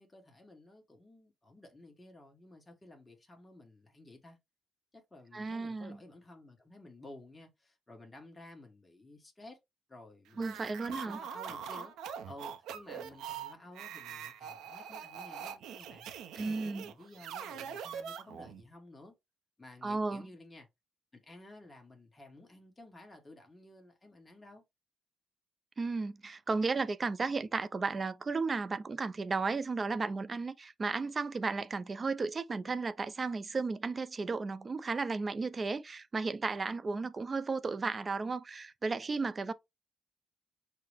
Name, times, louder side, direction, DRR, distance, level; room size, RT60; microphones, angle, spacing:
voice 1, 0.0-4.4 4.9-9.6 9.9-10.7 11.0-11.9 12.3-16.1 16.4-19.1 19.6-20.7 21.1-24.6, left 2 dB, 15° left, 1.3 m, -54 dB
voice 2, 5.3-6.0 10.4-11.2 16.4-16.9 19.8-20.2 25.8-39.5, right 4 dB, 35° right, 0.4 m, -34 dB
sound 1, 10.3-18.6, right 7 dB, 85° right, 0.6 m, -43 dB
5.6 x 2.1 x 3.3 m
cardioid pair, 90°, 0 cm